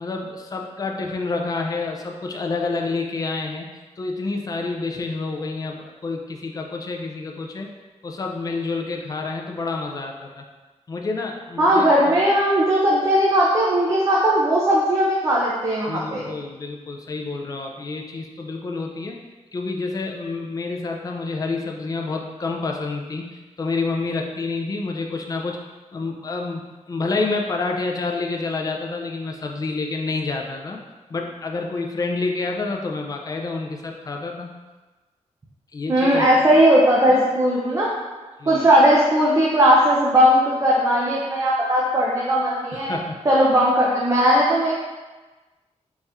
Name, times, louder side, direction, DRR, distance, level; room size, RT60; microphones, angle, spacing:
voice 1, 0.0-7.7 8.0-10.4 10.9-12.1 15.9-19.2 19.5-25.6 25.9-30.8 31.1-34.5 35.7-36.3 37.1-37.2 38.4-38.7 42.7-43.2, left 3 dB, 30° left, 1 dB, 0.4 m, -28 dB
voice 2, 11.6-16.3 35.9-37.9 38.5-42.9 43.2-44.7, equal, 25° right, -5 dB, 0.5 m, -18 dB
4.1 x 2.4 x 3.4 m, 1.2 s
wide cardioid pair, 170°, 12 cm